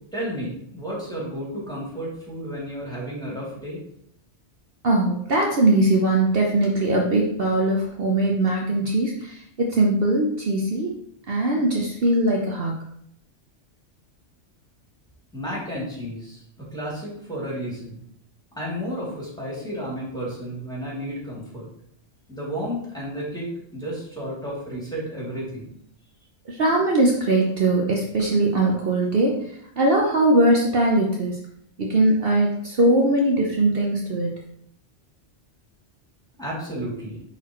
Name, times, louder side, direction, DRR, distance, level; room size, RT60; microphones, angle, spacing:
voice 1, 0.1-3.8 15.3-18.0 18.6-21.7 22.3-25.7 36.4-37.2, equal, 5° left, -6 dB, 2.8 m, -32 dB
voice 2, 4.8-10.9 11.3-12.8 26.5-31.4 31.8-34.4, right 2 dB, 55° right, -1 dB, 1.0 m, -21 dB
10.5 x 4.3 x 3.1 m, 0.69 s
omnidirectional pair, 1.2 m